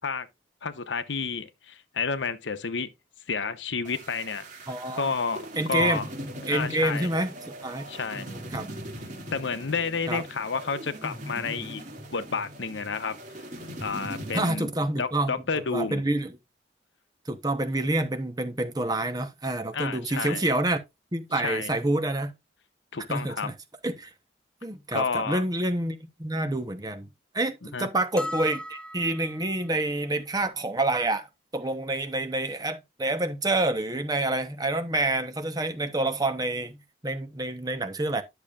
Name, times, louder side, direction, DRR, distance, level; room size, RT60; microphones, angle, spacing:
voice 1, 0.6-2.9 3.3-4.4 5.0-6.1 6.5-7.1 7.9-8.3 9.3-11.8 12.1-13.2 13.8-14.7 15.0-16.0 19.7-20.4 21.3-21.7 22.9-23.5 24.9-25.4 27.7-27.9, left 5 dB, 75° left, 0.9 m, -30 dB
sound 1, 3.8-14.5, right 1 dB, 40° right, 2.4 m, -40 dB
voice 2, 4.7-5.1 5.6-6.0 6.5-7.3 7.6-7.8 8.2-8.7 10.1-10.2 14.3-16.3 17.3-20.8 21.1-22.3 23.1-23.5 23.8-24.1 24.6-27.1 27.3-31.3 31.5-38.2, right 2 dB, 20° right, 0.9 m, -28 dB
sound 2, 28.2-29.5, left 1 dB, 5° left, 0.4 m, -36 dB
10.5 x 6.8 x 2.5 m
head